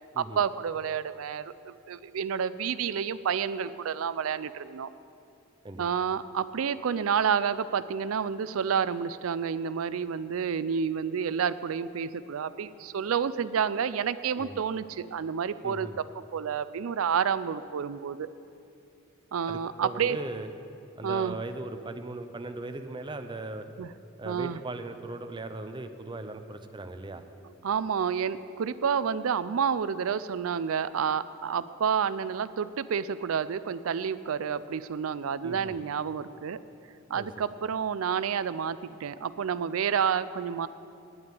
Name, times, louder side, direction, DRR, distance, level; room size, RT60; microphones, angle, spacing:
voice 1, 0.2-4.9 5.8-15.9 16.3-18.3 19.3-20.2 21.0-21.4 23.8-23.9 24.2-24.6 27.6-36.6 37.1-40.7, right 7 dB, 85° right, 15 dB, 0.4 m, -29 dB
voice 2, 15.6-16.0 19.5-20.5 21.0-23.7 24.2-27.3 35.4-35.8 37.1-37.3, right 2 dB, 25° right, 8 dB, 0.6 m, -38 dB
9.5 x 8.7 x 9.2 m, 2.6 s
head